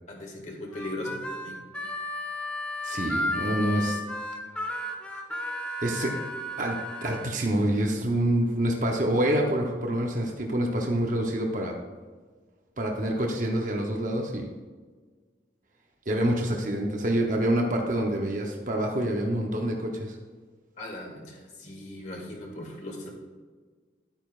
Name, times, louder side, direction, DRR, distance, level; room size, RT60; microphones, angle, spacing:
voice 1, 0.1-1.7 20.8-23.1, left 1 dB, 40° left, -1 dB, 1.9 m, -38 dB
Harmonica, 0.7-7.3, left 1 dB, 5° left, 0.7 m, -33 dB
voice 2, 2.8-4.0 4.7-4.9 5.8-6.1 6.6-11.8 12.8-14.5 16.1-20.2, right 1 dB, 45° right, 1 dB, 0.8 m, -27 dB
12.0 x 8.9 x 2.4 m, 1.5 s
head